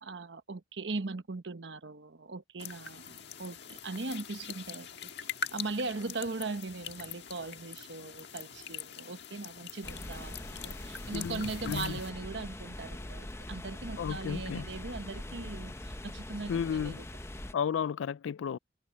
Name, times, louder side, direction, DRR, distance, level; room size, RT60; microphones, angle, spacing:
voice 1, 0.0-4.9 5.2-17.1, right 3 dB, 65° right, 1.0 m, -39 dB
sound 1, 2.6-12.1, left 6 dB, 60° left, 1.6 m, -43 dB
sound 2, 9.8-17.5, left 1 dB, 15° left, 0.7 m, -42 dB
voice 2, 11.1-11.9 14.0-14.6 16.5-16.9 17.5-18.6, left 7 dB, 85° left, 0.3 m, -33 dB
head